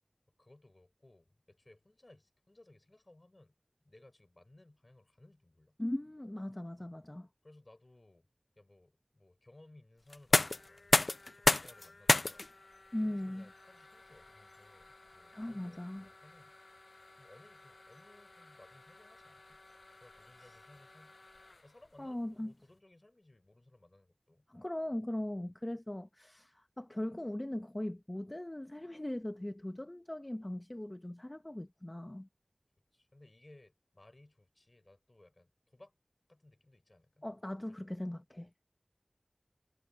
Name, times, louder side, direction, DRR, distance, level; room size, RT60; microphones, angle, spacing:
voice 1, 0.4-3.5 3.8-5.8 6.8-6.9 7.4-8.3 8.6-12.5 13.0-16.6 17.2-19.6 20.0-21.2 21.6-24.5 25.3-25.5 32.9-36.0 36.3-37.3 37.7-37.8, left 2 dB, 45° left, 4.1 m, -61 dB
voice 2, 5.8-7.3 12.9-13.5 15.3-16.1 22.0-22.5 24.5-32.3 37.2-38.5, left 1 dB, 30° left, 0.7 m, -39 dB
sound 1, 10.1-21.9, left 2 dB, 70° left, 0.4 m, -35 dB
wide cardioid pair, 50°, 0 cm